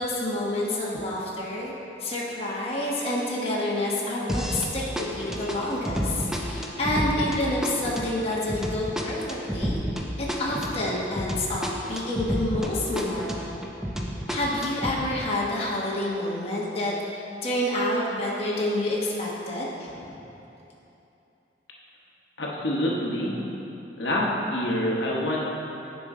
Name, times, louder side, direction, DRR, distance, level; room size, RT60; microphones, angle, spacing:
voice 1, 0.0-1.7 2.0-9.8 10.2-13.6 14.3-20.2, left 1 dB, 35° left, -5 dB, 1.1 m, -28 dB
sound 1, 4.3-4.7 5.0-12.7 13.0-15.0, equal, 5° right, 0.5 m, -30 dB
voice 2, 22.4-23.4 24.0-25.4, left 1 dB, 80° left, -4 dB, 1.1 m, -26 dB
9.8 x 5.3 x 3.7 m, 2.9 s
head